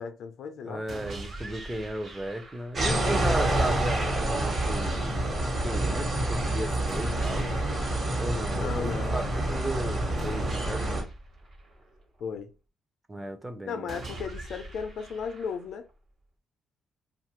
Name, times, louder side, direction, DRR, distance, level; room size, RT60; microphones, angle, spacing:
voice 1, 0.0-0.8 8.5-9.2 12.2-12.5 13.6-15.8, left 6 dB, 75° left, 0.5 m, -35 dB
voice 2, 0.7-5.0 5.6-7.5 8.2-8.9 9.1-11.1 13.1-13.9, right 1 dB, 15° right, 0.5 m, -35 dB
sound 1, 0.9-2.9 6.9-8.9 10.2-12.2 13.9-15.9, right 2 dB, 60° right, 0.9 m, -42 dB
sound 2, 2.8-11.0, right 1 dB, 40° right, 1.1 m, -27 dB
2.7 x 2.4 x 3.0 m
cardioid pair, 90°, 0 cm